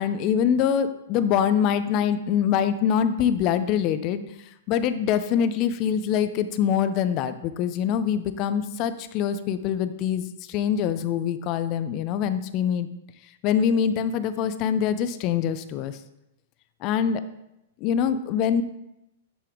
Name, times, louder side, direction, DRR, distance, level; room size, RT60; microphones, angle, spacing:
voice 1, 0.0-4.2 4.7-12.9 13.4-16.0 16.8-17.2 17.8-18.6, left 8 dB, 30° left, 12 dB, 0.3 m, -24 dB
8.4 x 3.6 x 3.4 m, 0.87 s
hypercardioid pair, 160°, 0 cm